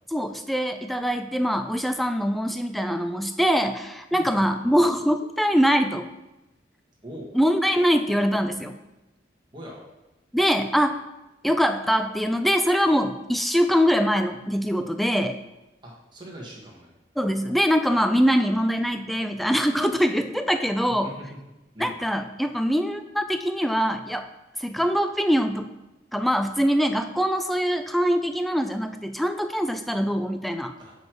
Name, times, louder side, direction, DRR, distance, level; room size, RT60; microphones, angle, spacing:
voice 1, 0.1-6.1 7.3-8.7 10.3-11.0 11.4-15.4 17.2-21.1 21.8-24.3 24.6-25.7 26.1-30.7, equal, ahead, 8 dB, 0.3 m, -23 dB
voice 2, 4.1-4.8 7.0-7.3 9.5-9.8 15.8-16.9 20.9-21.4 21.7-22.0 30.8-30.9, equal, 25° right, -3 dB, 1.5 m, -41 dB
6.2 x 5.3 x 4.6 m, 1.0 s
head